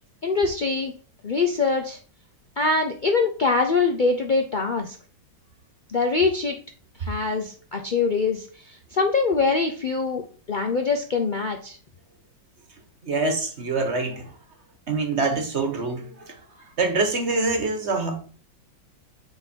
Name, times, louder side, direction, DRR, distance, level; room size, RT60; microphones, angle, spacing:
voice 1, 0.2-0.9 1.2-2.0 2.6-5.0 5.9-6.6 7.0-10.2 10.5-11.8, left 4 dB, 65° left, 0.4 m, -23 dB
voice 2, 13.0-14.3 14.9-16.3 16.8-18.2, right 3 dB, 40° right, 1.4 m, -25 dB
9.2 x 3.9 x 4.4 m
omnidirectional pair, 2.0 m